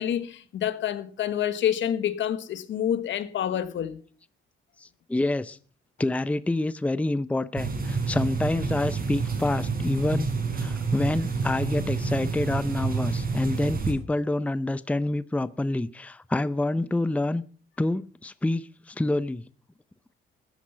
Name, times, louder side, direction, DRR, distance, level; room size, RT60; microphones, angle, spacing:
voice 1, 0.0-4.0, left 10 dB, 70° left, 1.4 m, -28 dB
voice 2, 4.8-5.6 6.0-10.3 10.5-17.4 17.8-19.4, left 2 dB, 5° left, 0.6 m, -27 dB
sound 1, 7.6-13.9, right 4 dB, 45° right, 5.0 m, -29 dB
14.0 x 10.5 x 5.7 m
cardioid pair, 90°, 20 cm